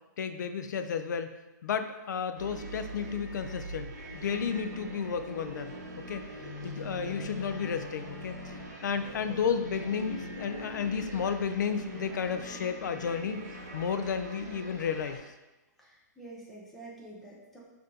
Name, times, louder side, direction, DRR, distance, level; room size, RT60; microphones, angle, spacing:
voice 1, 0.2-1.3 1.6-6.2 6.6-15.3, left 6 dB, 75° left, 9 dB, 0.4 m, -33 dB
sound 1, 2.4-15.2, right 3 dB, 60° right, 0.9 m, -44 dB
sound 2, 3.8-13.8, left 3 dB, 20° left, 1.0 m, -46 dB
voice 2, 15.8-17.7, right 2 dB, ahead, -5 dB, 0.4 m, -48 dB
5.5 x 2.6 x 2.7 m, 1.0 s
hypercardioid pair, 170°, 10 cm